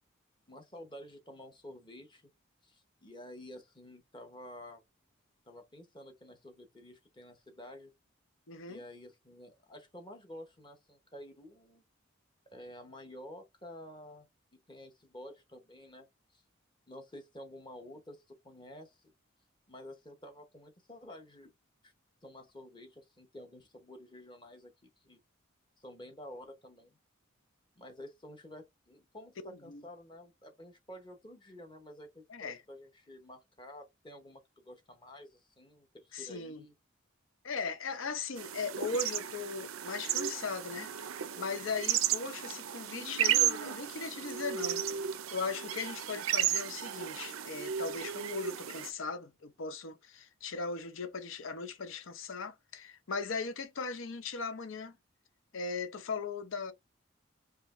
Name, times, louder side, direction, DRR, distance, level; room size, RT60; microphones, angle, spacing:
voice 1, 0.5-2.2 2.6-4.8 5.5-7.9 8.7-11.8 12.5-14.3 14.5-16.1 16.3-16.4 16.9-19.1 19.7-21.5 21.8-21.9 22.2-25.2 25.8-27.0 27.8-36.7, left 1 dB, 25° left, 0.8 m, -50 dB
voice 2, 8.5-8.8 29.4-29.8 32.3-32.6 36.1-36.6 37.4-55.0 55.5-56.7, left 4 dB, 75° left, 0.7 m, -38 dB
sound 1, 38.4-48.9, right 10 dB, 85° right, 0.5 m, -34 dB
4.9 x 2.8 x 2.5 m
head